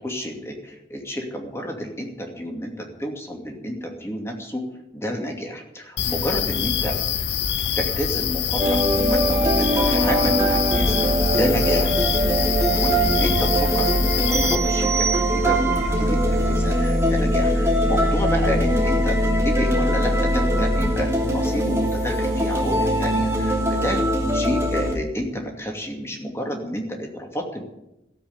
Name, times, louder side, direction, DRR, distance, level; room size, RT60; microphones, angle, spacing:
voice 1, 0.0-4.6 4.9-7.0 7.8-11.1 11.4-11.9 12.8-24.0 24.3-27.6, equal, 15° left, 1 dB, 2.5 m, -30 dB
sound 1, 6.0-14.6, left 8 dB, 85° left, 0.8 m, -25 dB
sound 2, 8.6-24.9, equal, 15° right, 2.8 m, -21 dB
sound 3, 14.3-15.9, right 7 dB, 40° right, 1.3 m, -28 dB
15.0 x 8.2 x 9.6 m, 0.89 s
head